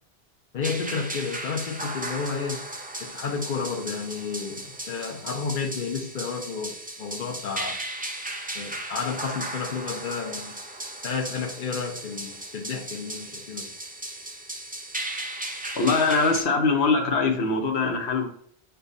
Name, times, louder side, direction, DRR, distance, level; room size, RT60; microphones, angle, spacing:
voice 1, 0.5-2.7 3.0-7.8 8.5-10.5 11.0-13.7, left 5 dB, 55° left, 0 dB, 0.8 m, -31 dB
sound 1, 0.6-16.4, right 1 dB, 15° right, 0.3 m, -36 dB
voice 2, 15.7-18.3, left 4 dB, 80° left, 2 dB, 1.1 m, -22 dB
6.6 x 2.3 x 2.6 m, 0.64 s
omnidirectional pair, 1.1 m